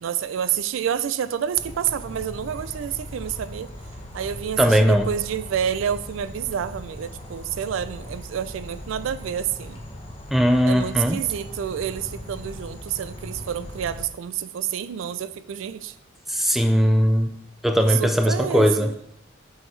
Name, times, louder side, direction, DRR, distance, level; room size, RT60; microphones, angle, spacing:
voice 1, 0.0-3.7 4.1-9.8 10.7-15.9 17.8-19.0, right 9 dB, 80° right, 15 dB, 0.3 m, -28 dB
sound 1, 1.5-14.0, left 1 dB, 30° left, 0.8 m, -39 dB
voice 2, 4.6-5.1 10.3-11.2 16.3-17.4 17.6-18.9, equal, ahead, 6 dB, 0.3 m, -19 dB
5.6 x 5.3 x 3.1 m, 0.74 s
head